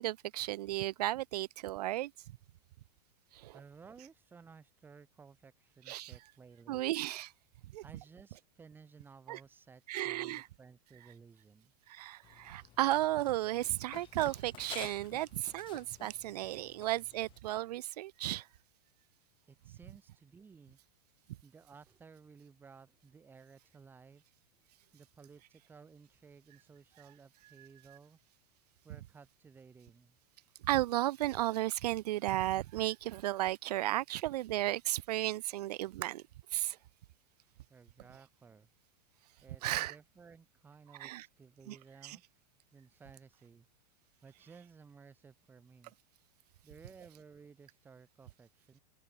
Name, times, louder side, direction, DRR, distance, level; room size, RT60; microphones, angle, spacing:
voice 1, 0.0-2.1 3.3-3.6 5.9-6.1 6.7-7.3 7.7-7.8 9.3-9.4 9.9-10.5 11.9-18.5 27.6-27.7 30.6-36.2 36.5-36.8 39.6-40.0 41.0-41.3 41.7-41.8 42.0-42.2, right 15 dB, 90° right, 0.5 m, -34 dB
voice 2, 3.5-6.8 7.8-11.7 19.5-20.8 21.4-24.2 24.9-28.2 28.8-30.2 37.7-38.7 39.4-42.2 42.7-43.7 44.2-45.9 46.6-48.8, right 5 dB, 10° right, 1.2 m, -57 dB
Run, 12.2-17.4, left 13 dB, 25° left, 1.4 m, -53 dB
open air
supercardioid pair, 160°, 20 cm